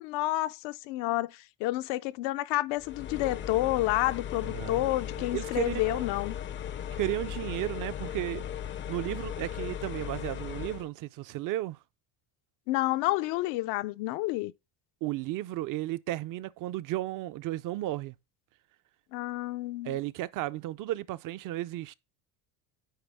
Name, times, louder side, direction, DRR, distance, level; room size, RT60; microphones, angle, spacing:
voice 1, 0.0-6.3 12.7-14.5 19.1-20.0, left 17 dB, 85° left, 0.6 m, -30 dB
sound 1, 2.8-10.9, left 9 dB, 30° left, 0.4 m, -37 dB
voice 2, 4.4-4.9 5.2-6.0 6.9-8.4 8.9-11.8 15.0-18.2 19.8-21.9, right 15 dB, 50° right, 0.5 m, -34 dB
9.1 x 4.4 x 3.4 m
cardioid pair, 130°, 41 cm